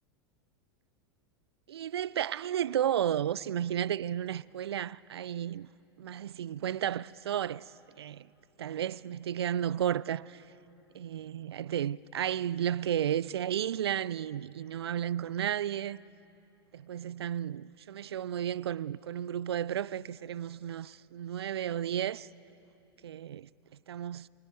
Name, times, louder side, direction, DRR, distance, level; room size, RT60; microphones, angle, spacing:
voice 1, 1.7-5.7 6.0-7.7 8.0-8.3 8.6-10.4 10.9-16.0 16.7-22.3 23.0-23.5 23.9-24.3, right 10 dB, 80° right, 0.4 m, -33 dB
28.5 x 24.5 x 4.6 m
hypercardioid pair, 95°, 13 cm